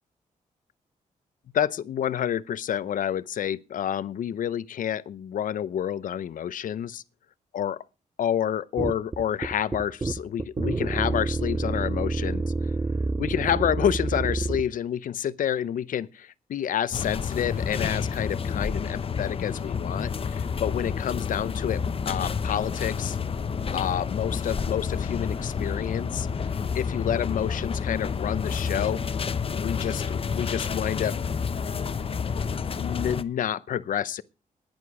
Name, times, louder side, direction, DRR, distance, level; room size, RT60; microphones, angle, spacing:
voice 1, 1.5-7.0 7.5-7.8 8.2-12.7 13.2-23.2 23.7-26.3 26.7-29.0 29.5-31.2 32.8-34.2, left 9 dB, 75° left, 0.7 m, -29 dB
sound 1, 8.8-14.7, right 3 dB, 20° right, 0.7 m, -28 dB
sound 2, 16.9-33.2, left 6 dB, 40° left, 0.8 m, -29 dB
14.5 x 10.5 x 4.8 m
cardioid pair, 105°, 14 cm